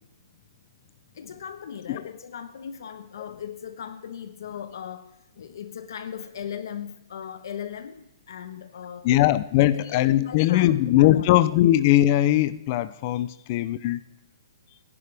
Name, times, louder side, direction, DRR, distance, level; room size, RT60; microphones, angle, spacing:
voice 1, 1.1-9.1 9.7-11.3 13.2-13.3, left 8 dB, 60° left, 1.1 m, -38 dB
voice 2, 9.0-14.0, left 14 dB, 25° left, 0.5 m, -20 dB
29.0 x 11.0 x 3.4 m
hypercardioid pair, 170°, 2 cm